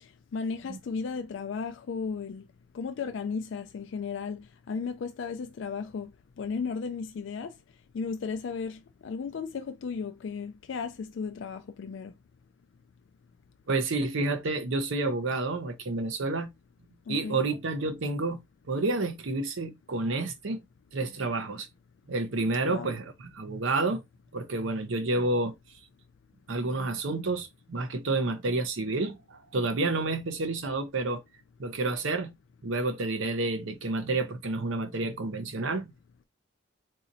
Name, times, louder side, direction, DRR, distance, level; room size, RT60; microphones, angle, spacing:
voice 1, 0.3-2.4 2.7-6.1 6.4-7.5 7.9-12.1 17.1-17.5 22.7-22.9, left 5 dB, 65° left, 0.3 m, -35 dB
voice 2, 13.7-16.5 17.1-18.4 18.7-20.6 20.9-21.7 22.1-24.0 24.3-25.5 26.5-31.2 31.6-32.3 32.6-35.9, right 2 dB, 70° right, 0.7 m, -29 dB
4.0 x 2.8 x 2.6 m
head